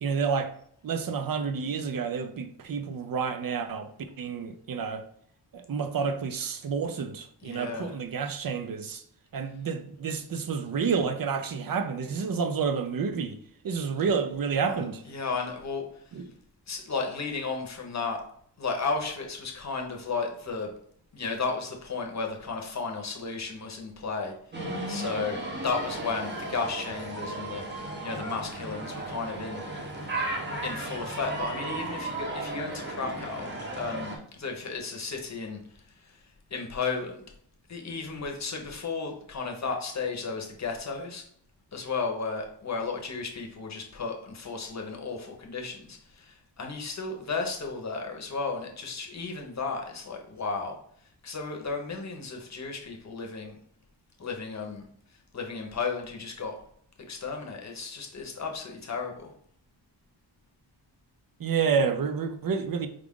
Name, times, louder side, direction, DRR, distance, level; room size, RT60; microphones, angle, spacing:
voice 1, 0.0-0.5 0.8-3.9 4.2-5.0 5.5-9.0 9.3-13.4 13.6-15.0 16.1-16.2 61.4-62.9, right 6 dB, 50° right, 0.5 m, -29 dB
voice 2, 7.4-8.0 14.7-15.9 16.7-18.2 18.6-20.7 21.1-24.3 24.9-29.6 30.6-35.6 36.0-36.2 36.5-37.2 37.7-41.2 41.7-50.8 51.2-53.6 54.2-54.8 55.3-56.5 57.0-59.3, left 4 dB, 40° left, 0.8 m, -34 dB
sound 1, 24.5-34.2, right 2 dB, 25° right, 0.8 m, -35 dB
4.8 x 2.4 x 3.6 m
wide cardioid pair, 150°, 44 cm